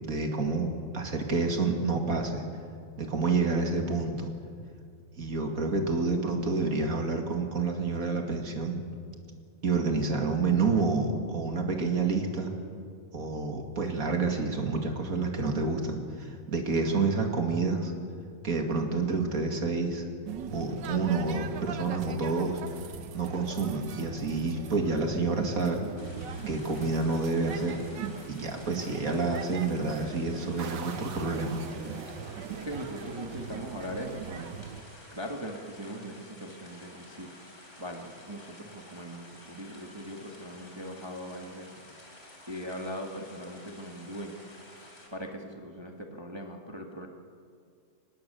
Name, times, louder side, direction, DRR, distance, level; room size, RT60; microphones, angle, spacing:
voice 1, 0.0-0.7 0.9-2.4 3.0-4.3 5.2-8.8 9.6-12.5 13.1-17.9 18.4-20.0 20.5-22.6 23.1-25.8 26.5-27.8 28.3-31.6, right 4 dB, 30° right, 3 dB, 2.2 m, -28 dB
sound 1, 20.3-34.8, right 7 dB, 85° right, 0.9 m, -41 dB
sound 2, 26.0-45.1, left 1 dB, 25° left, 3.9 m, -52 dB
sound 3, 30.6-35.1, right 6 dB, 65° right, 2.4 m, -45 dB
voice 2, 32.3-34.6 35.1-37.3 37.8-41.7 42.5-44.4 45.1-47.1, equal, 15° right, 2 dB, 0.9 m, -40 dB
25.0 x 19.5 x 6.9 m, 2.2 s
omnidirectional pair, 3.3 m